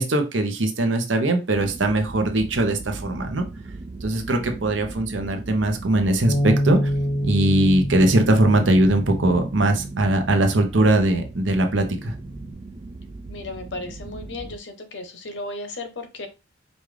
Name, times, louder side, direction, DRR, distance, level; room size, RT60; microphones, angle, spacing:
voice 1, 0.0-3.4 4.0-6.9 7.2-12.1, right 1 dB, 90° right, 5 dB, 0.9 m, -20 dB
sound 1, 1.5-14.6, right 3 dB, 25° right, 0.3 m, -38 dB
Bass guitar, 6.3-10.7 11.4-12.5, equal, 30° left, 0.6 m, -28 dB
voice 2, 13.3-16.3, left 2 dB, 70° left, 7 dB, 0.8 m, -35 dB
5.2 x 2.4 x 3.2 m, 0.27 s
head